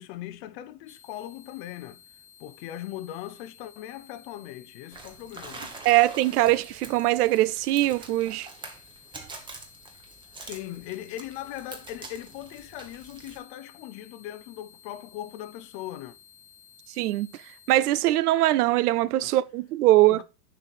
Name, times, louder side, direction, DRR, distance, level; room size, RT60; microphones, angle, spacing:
voice 1, 0.0-2.0 2.4-5.7 10.4-16.2 19.2-19.3 20.1-20.2, left 13 dB, 40° left, 0.6 m, -39 dB
sound 1, 0.9-17.8, left 8 dB, 15° left, 0.8 m, -54 dB
sound 2, 4.9-13.4, right 3 dB, 10° right, 1.0 m, -45 dB
voice 2, 5.9-8.5 17.0-17.3 17.7-20.2, right 16 dB, 70° right, 0.5 m, -22 dB
9.8 x 3.3 x 4.1 m
hypercardioid pair, 130°, 49 cm